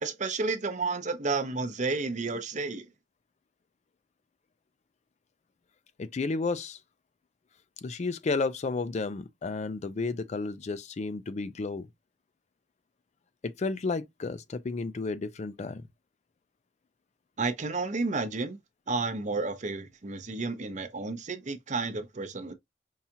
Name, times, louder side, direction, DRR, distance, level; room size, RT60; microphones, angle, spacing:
voice 1, 0.0-2.9 17.4-18.6 18.9-22.5, right 3 dB, 40° right, 0.7 m, -31 dB
voice 2, 6.0-6.8 7.8-11.9 13.4-15.9, left 3 dB, 40° left, 0.4 m, -32 dB
5.5 x 2.4 x 2.8 m
head